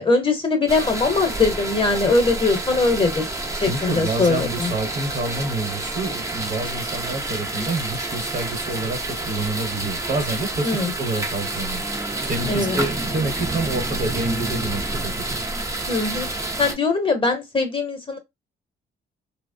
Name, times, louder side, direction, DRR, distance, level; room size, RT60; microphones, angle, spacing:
voice 1, 0.0-4.7 10.6-10.9 12.5-12.8 15.9-18.2, left 3 dB, 25° left, 0.9 m, -21 dB
sound 1, 0.7-16.7, right 2 dB, 15° right, 0.6 m, -29 dB
voice 2, 3.6-15.4, right 2 dB, 40° right, 1.1 m, -28 dB
2.9 x 2.1 x 2.6 m
cardioid pair, 90°, 20 cm